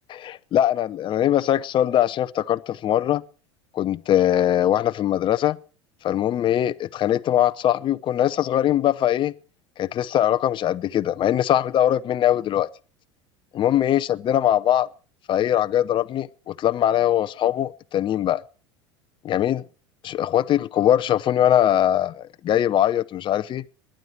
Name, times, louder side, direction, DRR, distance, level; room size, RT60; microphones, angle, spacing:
voice 1, 0.2-3.2 3.7-5.6 6.0-9.3 9.8-12.7 13.5-14.9 15.3-18.4 19.2-19.6 20.0-23.6, left 11 dB, 35° left, 0.7 m, -21 dB
21.5 x 10.0 x 4.6 m
hypercardioid pair, 80°, 15 cm